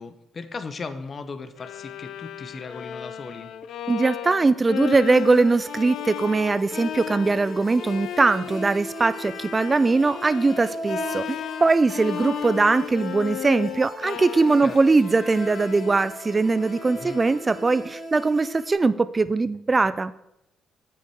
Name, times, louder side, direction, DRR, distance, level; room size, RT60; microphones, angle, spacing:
voice 1, 0.0-3.5 14.6-14.8 17.0-17.2, left 4 dB, 40° left, 10 dB, 0.8 m, -37 dB
Bowed string instrument, 1.6-17.7, left 10 dB, 75° left, 0.4 m, -35 dB
voice 2, 3.9-20.1, right 3 dB, 25° right, 15 dB, 0.4 m, -21 dB
sound 1, 5.0-18.7, right 1 dB, 5° left, 3.3 m, -39 dB
7.7 x 7.0 x 4.7 m, 0.85 s
cardioid pair, 90°, 0 cm